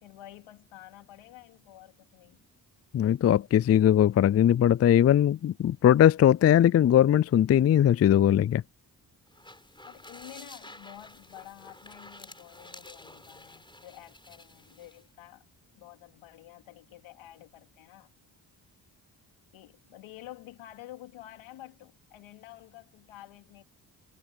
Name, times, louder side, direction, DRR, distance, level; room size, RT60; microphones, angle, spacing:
voice 1, 0.0-2.4 9.8-15.4 15.7-18.1 19.5-23.6, left 14 dB, 85° left, 2.9 m, -49 dB
voice 2, 2.9-8.6, left 10 dB, 35° left, 0.4 m, -20 dB
sound 1, 9.3-15.1, left 1 dB, 10° left, 4.2 m, -50 dB
hypercardioid pair, 40°, 47 cm